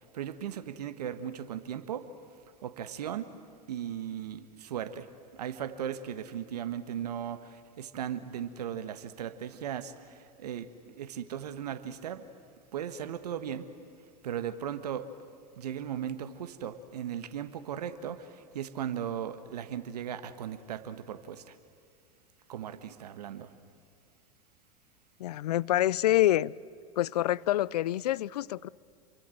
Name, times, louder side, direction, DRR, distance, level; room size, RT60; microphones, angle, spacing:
voice 1, 0.1-2.1 2.6-3.3 3.7-5.1 5.3-12.2 12.7-13.7 14.2-15.1 15.6-21.5 22.5-23.5, right 9 dB, 80° right, 1.5 m, -37 dB
voice 2, 25.2-26.5 27.0-28.7, left 14 dB, 75° left, 0.6 m, -26 dB
28.0 x 24.0 x 7.8 m
hypercardioid pair, 90°, 20 cm